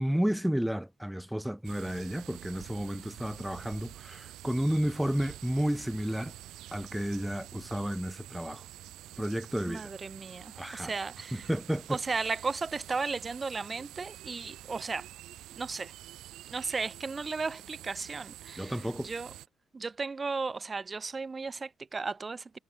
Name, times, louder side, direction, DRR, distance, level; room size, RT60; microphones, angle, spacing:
voice 1, 0.0-6.3 6.7-8.6 9.2-9.9 10.6-10.9 11.3-12.0 18.6-19.1, equal, 5° right, 0.5 m, -32 dB
sound 1, 1.6-19.5, right 14 dB, 85° right, 0.6 m, -48 dB
voice 2, 9.7-11.5 11.9-15.1 15.6-15.9 16.5-19.3 19.7-22.6, right 4 dB, 30° right, 1.1 m, -35 dB
cardioid pair, 90°, 0 cm